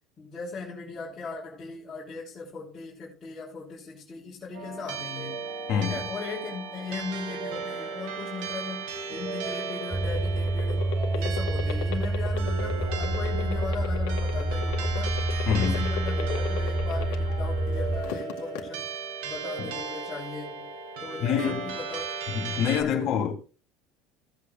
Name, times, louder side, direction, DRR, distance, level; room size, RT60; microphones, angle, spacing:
voice 1, 0.2-10.9 11.1-15.2 15.5-18.9 19.2-20.7 21.0-22.1 22.4-23.2, left 4 dB, 15° left, 3.4 m, -38 dB
sound 1, 4.5-22.8, right 5 dB, 85° right, 2.6 m, -36 dB
voice 2, 5.7-6.1 9.1-9.3 15.5-15.8 19.6-19.7 21.2-21.8 22.3-23.3, left 8 dB, 45° left, 2.6 m, -27 dB
sound 2, 9.3-17.5 17.9-18.6, left 11 dB, 75° left, 2.0 m, -35 dB
sound 3, 9.9-18.0, right 1 dB, 10° right, 1.1 m, -28 dB
16.5 x 8.5 x 2.5 m
cardioid pair, 165°, 0 cm